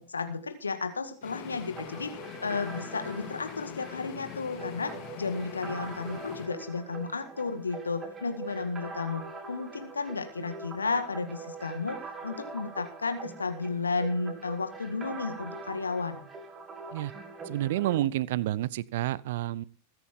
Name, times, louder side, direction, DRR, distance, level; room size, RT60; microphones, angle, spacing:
voice 1, 0.0-2.1 2.4-4.9 5.2-12.0 12.2-16.3, left 4 dB, 75° left, 8 dB, 1.9 m, -33 dB
sound 1, 1.2-6.5, left 11 dB, 40° left, 2.1 m, -43 dB
sound 2, 1.7-18.0, right 4 dB, 20° right, 2.1 m, -43 dB
voice 2, 17.4-19.6, right 14 dB, 55° right, 23 dB, 0.6 m, -29 dB
21.0 x 9.2 x 3.7 m, 0.38 s
figure-of-eight pair, 90°, 0 cm